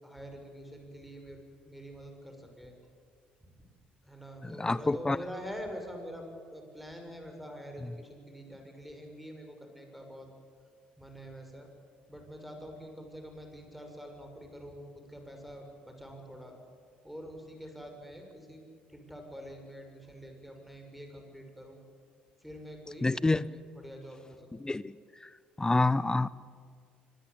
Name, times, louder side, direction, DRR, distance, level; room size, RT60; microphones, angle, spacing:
voice 1, 0.0-2.7 4.0-6.3 6.5-10.3 11.0-11.7 12.1-16.5 17.0-18.6 18.9-21.8 22.4-23.1 23.7-24.5, equal, ahead, 4 dB, 6.9 m, -46 dB
voice 2, 4.4-5.2 23.0-23.5 24.6-24.9 25.6-26.3, left 2 dB, 15° left, 20 dB, 0.7 m, -27 dB
25.0 x 21.5 x 8.8 m, 2.1 s
hypercardioid pair, 55°, 4 cm